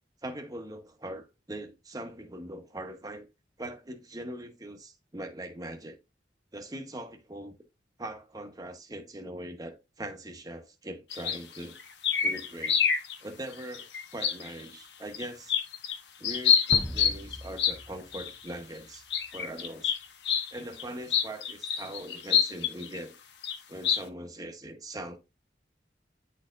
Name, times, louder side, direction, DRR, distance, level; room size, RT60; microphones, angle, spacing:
voice 1, 0.2-3.3 3.6-6.0 6.5-7.5 8.0-11.8 12.2-12.8 13.2-15.6 16.2-19.0 19.3-20.0 20.5-23.1 23.7-25.2, right 1 dB, 20° right, 1.0 m, -41 dB
sound 1, 11.1-13.2 13.5-14.6 15.1-16.0 16.2-17.8 18.1-18.3 19.1-20.5 20.8-20.9 21.1-23.0 23.4-23.6 23.8-24.0, left 7 dB, 70° left, 1.0 m, -26 dB
sound 2, 16.7-19.1, equal, ahead, 0.4 m, -39 dB
9.5 x 4.4 x 2.5 m
head